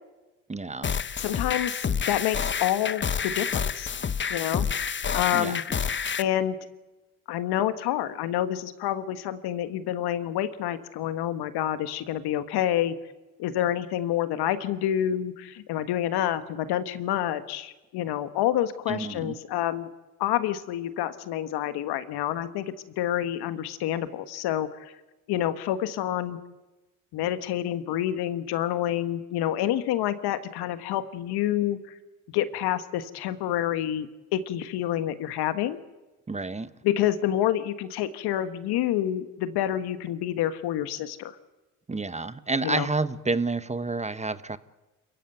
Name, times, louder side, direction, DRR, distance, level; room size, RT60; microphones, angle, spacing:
voice 1, 0.5-0.9 5.3-5.6 18.9-19.3 36.3-36.7 41.9-44.6, right 3 dB, 15° right, 14 dB, 1.2 m, -29 dB
sound 1, 0.8-6.2, left 6 dB, 25° left, 1.0 m, -29 dB
voice 2, 1.2-1.8 2.1-3.9 4.3-5.6 6.2-6.6 7.3-13.0 13.4-19.9 20.2-24.9 25.3-26.4 27.1-32.0 32.3-35.8 36.8-41.4 42.6-42.9, left 12 dB, 65° left, 12 dB, 1.6 m, -28 dB
27.5 x 15.5 x 9.2 m, 1.1 s
hypercardioid pair, 65°, 41 cm